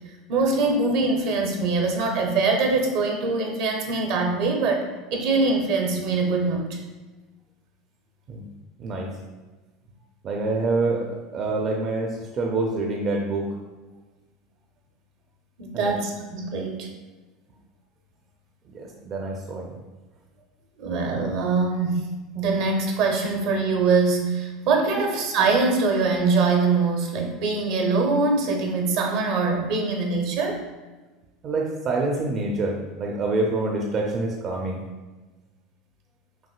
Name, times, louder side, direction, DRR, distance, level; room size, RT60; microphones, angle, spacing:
voice 1, 0.3-6.7 15.6-16.9 20.8-30.6, right 3 dB, 70° right, 2 dB, 0.8 m, -23 dB
voice 2, 10.2-13.5 15.7-16.0 18.7-19.8 31.4-34.8, right 2 dB, 40° right, 0 dB, 0.5 m, -26 dB
5.8 x 2.6 x 2.4 m, 1.2 s
supercardioid pair, 105°, 0 cm